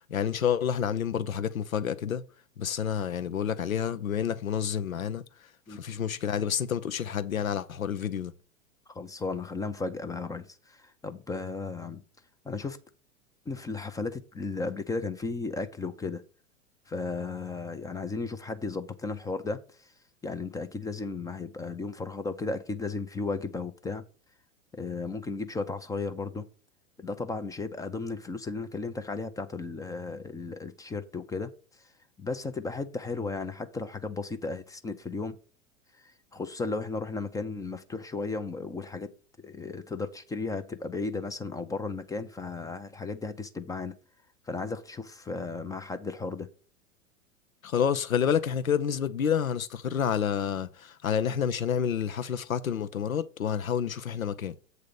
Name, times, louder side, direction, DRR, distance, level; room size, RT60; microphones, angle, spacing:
voice 1, 0.1-2.2 2.6-5.2 5.7-8.3 47.6-54.5, left 8 dB, 90° left, 0.7 m, -29 dB
voice 2, 8.9-12.0 12.4-12.8 13.5-16.2 16.9-19.9 20.2-24.0 24.7-26.5 27.0-31.5 32.2-35.4 36.0-39.1 39.4-43.9 44.5-46.5, left 3 dB, 10° left, 0.5 m, -35 dB
8.1 x 3.7 x 6.7 m
hypercardioid pair, 100°, 40 cm